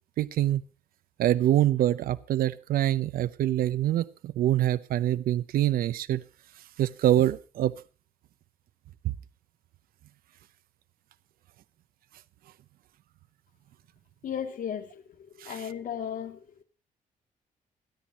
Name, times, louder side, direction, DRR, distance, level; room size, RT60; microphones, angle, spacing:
voice 1, 0.2-0.7 1.2-6.2 6.8-7.7 9.0-9.1 15.4-15.5, right 13 dB, 90° right, 0.8 m, -25 dB
voice 2, 14.2-16.6, left 8 dB, 70° left, 2.8 m, -36 dB
27.0 x 10.5 x 3.0 m
cardioid pair, 125°, 15 cm